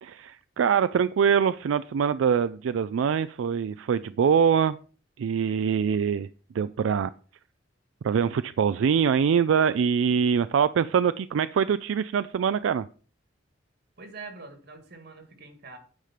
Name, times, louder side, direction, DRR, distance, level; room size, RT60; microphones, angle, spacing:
voice 1, 0.0-4.8 5.2-6.3 6.5-7.1 8.0-12.9, right 7 dB, 85° right, 14 dB, 0.3 m, -24 dB
voice 2, 14.0-15.8, right 3 dB, 60° right, 7 dB, 1.9 m, -44 dB
9.5 x 5.0 x 5.7 m, 0.39 s
head